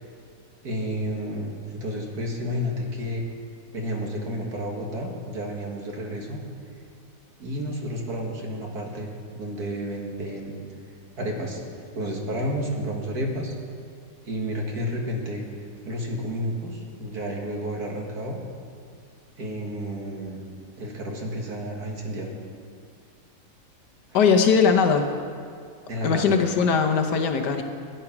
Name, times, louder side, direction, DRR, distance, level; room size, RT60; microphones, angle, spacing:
voice 1, 0.6-3.3 3.7-6.4 7.4-10.6 11.2-13.5 14.2-15.4 15.8-18.4 19.4-20.4 20.8-22.3 25.9-26.3, equal, 60° right, 0 dB, 2.2 m, -31 dB
voice 2, 24.1-25.1 26.0-27.6, left 5 dB, 70° left, 6 dB, 1.5 m, -20 dB
13.5 x 9.7 x 5.9 m, 2.3 s
omnidirectional pair, 1.9 m